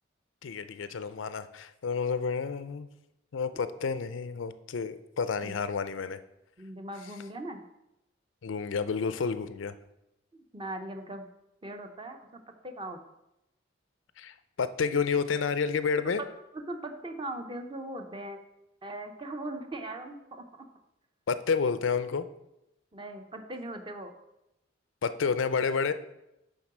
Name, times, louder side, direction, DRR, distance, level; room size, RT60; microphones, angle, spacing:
voice 1, 0.4-2.9 3.3-6.2 8.4-9.7 14.2-16.2 21.3-22.3 25.0-25.9, left 5 dB, 90° left, 13 dB, 0.5 m, -30 dB
voice 2, 6.6-7.6 10.5-11.3 11.6-13.0 16.2-18.4 18.8-20.4 22.9-24.1, right 1 dB, 25° right, 5 dB, 0.8 m, -39 dB
9.5 x 3.8 x 6.1 m, 0.90 s
head